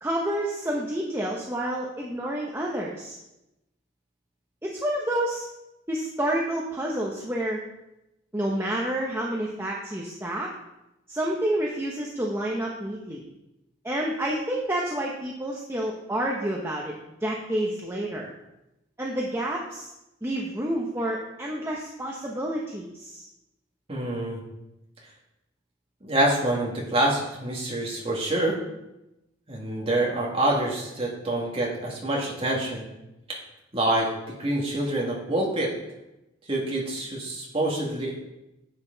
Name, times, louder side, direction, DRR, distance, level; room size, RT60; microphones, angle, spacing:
voice 1, 0.0-3.2 4.6-5.4 5.9-7.6 8.3-10.5 11.1-13.2 13.8-16.9 17.2-18.3 19.0-19.9 20.2-23.3, right 1 dB, 15° right, -2 dB, 0.9 m, -29 dB
voice 2, 23.9-24.4 26.0-28.6 29.5-32.9 33.3-33.4 33.7-34.1 34.4-35.7 36.5-38.1, right 1 dB, 30° right, -3 dB, 2.3 m, -26 dB
10.0 x 8.1 x 4.0 m, 0.92 s
head